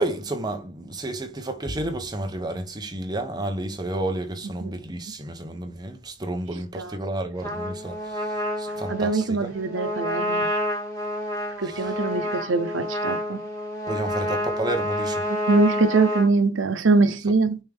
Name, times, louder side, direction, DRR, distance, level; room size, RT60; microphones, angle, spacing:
voice 1, 0.0-9.5 11.6-12.0 13.9-15.3, right 1 dB, 20° right, 0.9 m, -31 dB
Trumpet, 7.4-16.3, left 1 dB, 15° left, 2.1 m, -28 dB
voice 2, 8.9-10.5 11.6-13.4 15.3-17.6, right 3 dB, 90° right, 0.8 m, -23 dB
9.1 x 3.6 x 3.5 m
head